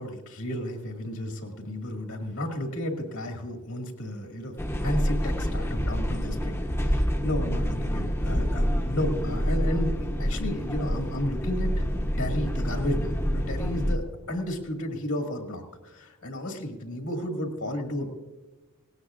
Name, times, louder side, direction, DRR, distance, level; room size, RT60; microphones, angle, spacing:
voice 1, 0.0-4.6 4.8-11.9 12.2-18.1, left 1 dB, 75° left, 2 dB, 2.0 m, -33 dB
sound 1, 4.6-14.0, equal, 10° left, 0.9 m, -27 dB
18.0 x 17.5 x 2.5 m, 1.2 s
head